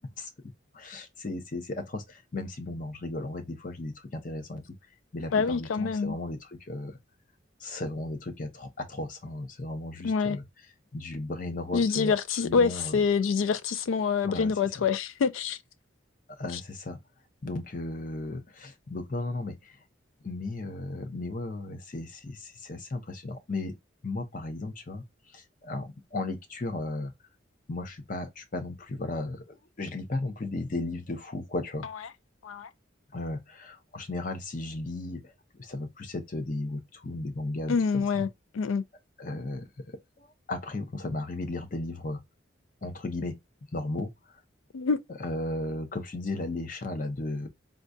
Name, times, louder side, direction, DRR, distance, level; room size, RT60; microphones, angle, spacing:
voice 1, 0.2-4.7 5.1-7.0 7.6-10.4 10.9-13.0 14.2-14.8 16.3-17.0 17.4-19.8 20.2-23.8 24.0-25.0 25.3-27.1 27.7-31.9 33.1-35.3 35.6-38.3 39.2-42.2 42.8-43.4 43.7-44.1 45.1-47.5, left 2 dB, 40° left, 0.6 m, -35 dB
voice 2, 5.3-6.2 10.0-10.4 11.7-15.6 32.4-32.7 37.7-38.3 38.5-38.8 44.7-45.0, left 5 dB, 85° left, 0.4 m, -26 dB
3.7 x 2.2 x 2.5 m
head